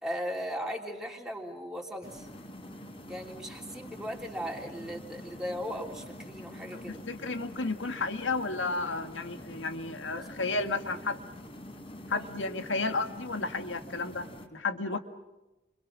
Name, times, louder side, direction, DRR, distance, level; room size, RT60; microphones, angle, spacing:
voice 1, 0.0-2.3 3.1-7.0 10.2-10.6 12.1-12.5 14.9-15.0, equal, 5° right, -1 dB, 3.4 m, -38 dB
sound 1, 2.0-14.5, left 1 dB, 30° left, 4.3 m, -46 dB
voice 2, 6.7-11.2 12.1-15.0, left 3 dB, 80° left, 7 dB, 2.1 m, -32 dB
29.5 x 26.5 x 6.3 m, 1.0 s
head